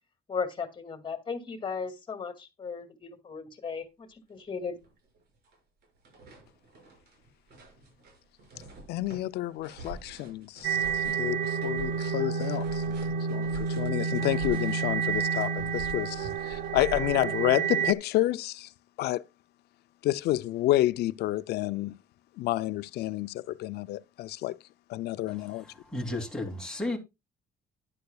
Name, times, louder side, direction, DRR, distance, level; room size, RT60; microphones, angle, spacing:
voice 1, 0.3-4.8, left 5 dB, 30° left, 2.5 m, -36 dB
sound 1, 4.4-4.5 4.8-5.6 5.8-17.5, right 2 dB, 70° right, 6.4 m, -46 dB
voice 2, 8.9-12.9 13.3-18.7 19.0-19.2 20.0-21.9 22.4-24.6 24.9-25.6, left 15 dB, 75° left, 0.6 m, -29 dB
sound 2, 10.6-17.9, right 6 dB, 85° right, 0.9 m, -30 dB
voice 3, 25.3-27.0, left 2 dB, 5° left, 2.9 m, -34 dB
11.5 x 10.5 x 2.4 m
cardioid pair, 110°, 17 cm